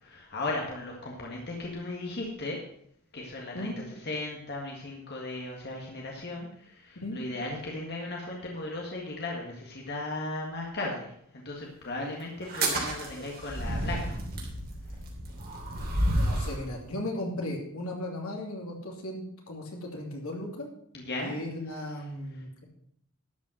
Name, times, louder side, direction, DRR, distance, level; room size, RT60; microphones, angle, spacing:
voice 1, 0.0-2.6 3.1-3.7 4.0-14.2 20.9-21.4, left 2 dB, 50° left, -1 dB, 1.8 m, -36 dB
sound 1, 12.4-16.6, right 1 dB, 45° right, 3.1 m, -30 dB
voice 2, 16.2-20.7 21.2-22.6, left 1 dB, 75° left, 0 dB, 2.9 m, -36 dB
12.0 x 5.5 x 7.5 m, 0.70 s
head